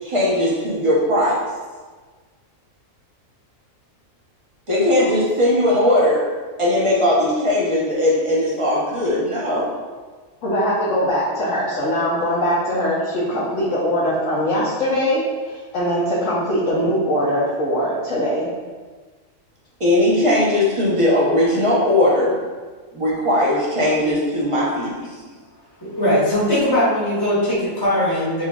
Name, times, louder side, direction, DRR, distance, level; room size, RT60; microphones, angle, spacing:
voice 1, 0.0-1.4 4.7-6.3 6.6-9.7 19.8-22.4 22.9-25.0, left 1 dB, 30° right, -6 dB, 0.8 m, -18 dB
voice 2, 10.4-18.5, equal, 70° left, -8 dB, 1.1 m, -21 dB
voice 3, 25.8-28.4, left 1 dB, 20° left, -9 dB, 0.9 m, -20 dB
5.8 x 2.3 x 2.3 m, 1.4 s
omnidirectional pair, 1.4 m